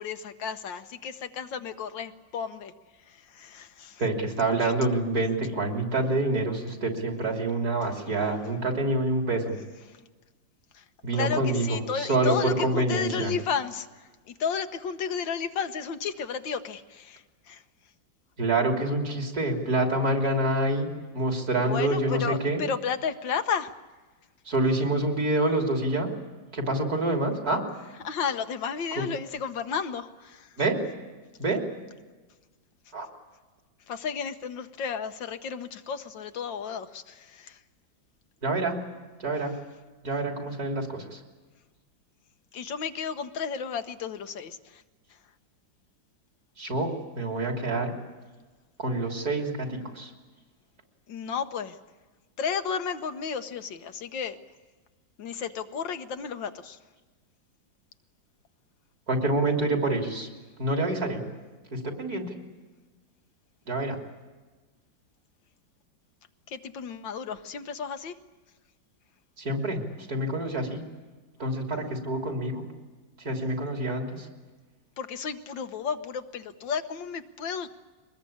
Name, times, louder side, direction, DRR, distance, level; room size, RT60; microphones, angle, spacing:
voice 1, 0.0-2.7 3.3-4.0 4.6-4.7 11.1-13.9 14.4-17.2 17.5-17.6 21.6-23.7 28.0-30.5 33.9-37.6 42.5-44.8 51.1-51.8 52.4-54.4 55.2-56.8 66.5-68.1 75.0-77.7, left 6 dB, 75° left, 9 dB, 1.7 m, -32 dB
voice 2, 4.0-9.6 11.0-13.3 18.4-22.6 24.5-26.1 26.5-27.7 28.9-29.0 30.6-30.8 31.4-31.7 32.9-33.1 38.4-38.8 39.2-39.6 40.0-41.2 46.6-47.9 48.8-50.1 59.1-60.3 60.6-61.2 61.7-62.4 63.7-64.0 69.4-69.8 70.1-70.8 71.4-72.7 73.2-74.3, right 2 dB, 50° right, 3 dB, 3.7 m, -27 dB
23.5 x 20.5 x 8.6 m, 1.3 s
omnidirectional pair, 2.1 m